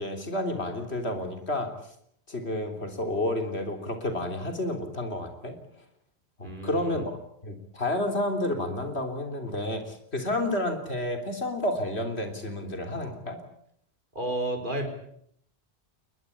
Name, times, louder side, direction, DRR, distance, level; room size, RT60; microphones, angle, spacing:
voice 1, 0.0-1.7 2.3-5.6 6.4-7.2 7.4-13.4, left 1 dB, 75° left, 6 dB, 3.8 m, -30 dB
voice 2, 6.4-7.0 14.1-14.9, right 1 dB, 50° right, 4 dB, 4.6 m, -32 dB
21.5 x 21.0 x 8.5 m, 0.69 s
omnidirectional pair, 1.1 m